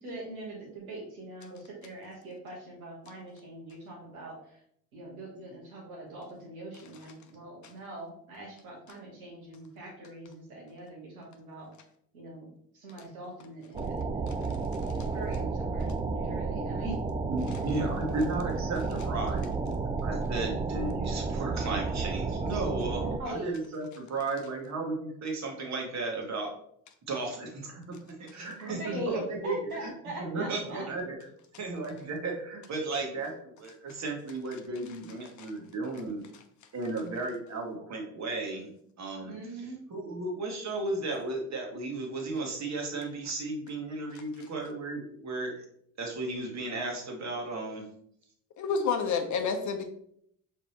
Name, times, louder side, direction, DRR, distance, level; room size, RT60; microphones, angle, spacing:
voice 1, 0.0-4.6 4.9-11.7 12.1-14.4 15.1-17.0 22.9-23.5 28.6-30.8 39.3-39.8, right 1 dB, 90° right, -2 dB, 1.3 m, -42 dB
sound 1, 13.7-23.2, right 4 dB, 15° right, 0.3 m, -32 dB
voice 2, 17.3-19.5 20.0-26.5 27.1-29.6 29.8-29.9 30.2-31.2 31.6-36.2 36.7-38.7 39.0-39.3 39.9-45.5 46.0-47.9, right 3 dB, 40° right, 1 dB, 1.5 m, -34 dB
voice 3, 48.6-49.8, left 5 dB, 45° left, 6 dB, 0.8 m, -29 dB
5.0 x 3.6 x 2.8 m, 0.69 s
hypercardioid pair, 60°, 42 cm